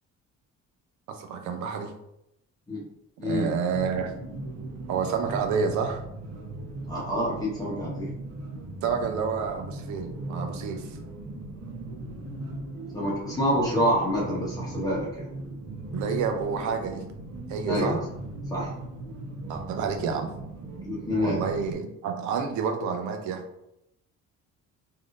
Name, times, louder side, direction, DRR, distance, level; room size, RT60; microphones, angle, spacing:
voice 1, 1.1-1.9 3.2-4.1 4.9-6.0 8.8-11.0 15.9-17.0 17.5-18.0 19.5-20.3 21.2-23.4, right 6 dB, 70° right, 6 dB, 0.6 m, -29 dB
voice 2, 3.2-3.5 6.9-8.1 12.9-15.3 17.6-18.0 18.5-18.7 20.8-21.4, equal, 10° left, -6 dB, 0.9 m, -27 dB
sound 1, 3.7-21.7, right 2 dB, 55° right, 0.9 m, -38 dB
3.4 x 2.6 x 2.5 m, 0.82 s
cardioid pair, 135°, 30 cm